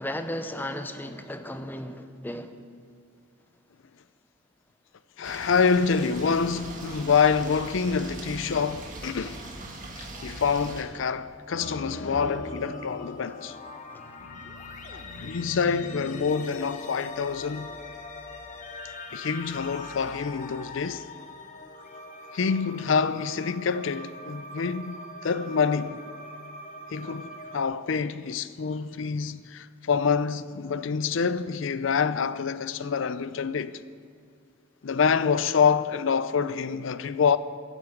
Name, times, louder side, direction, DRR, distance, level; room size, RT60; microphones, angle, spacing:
voice 1, 0.0-2.5, left 1 dB, 10° left, 0.6 m, -35 dB
voice 2, 5.2-9.4 10.0-13.6 14.9-17.7 19.1-21.1 22.3-26.0 26.9-33.8 34.8-37.4, left 6 dB, 65° left, 0.5 m, -26 dB
sound 1, 5.2-10.8, right 2 dB, 40° right, 1.7 m, -41 dB
sound 2, 11.5-27.6, left 2 dB, 35° left, 1.0 m, -41 dB
11.5 x 9.1 x 7.8 m
head